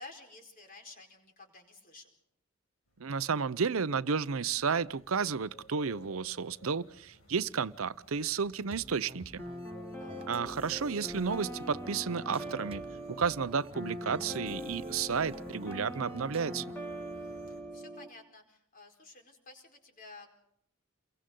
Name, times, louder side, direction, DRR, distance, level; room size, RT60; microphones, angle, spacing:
voice 1, 0.0-2.1 10.0-10.3 17.7-20.3, left 3 dB, 40° left, 4.5 m, -52 dB
sound 1, 2.9-17.6, equal, 85° left, 6.8 m, -56 dB
voice 2, 3.0-9.4 10.3-12.8 13.1-16.7, right 5 dB, 75° right, 0.7 m, -32 dB
sound 2, 8.7-16.8, right 2 dB, 25° right, 0.7 m, -50 dB
sound 3, 9.4-18.1, equal, 10° left, 2.2 m, -42 dB
29.0 x 23.0 x 3.9 m
head